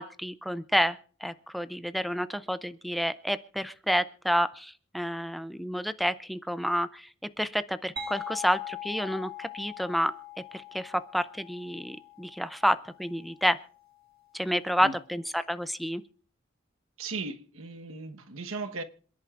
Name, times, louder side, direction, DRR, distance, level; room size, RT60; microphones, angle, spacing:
voice 1, 0.0-7.1 7.4-10.1 10.5-13.6 14.3-16.0, equal, ahead, 0.5 m, -29 dB
sound 1, 8.0-13.4, left 8 dB, 50° right, 1.9 m, -42 dB
voice 2, 17.0-18.8, right 3 dB, 85° right, 1.2 m, -37 dB
27.0 x 10.5 x 2.5 m
head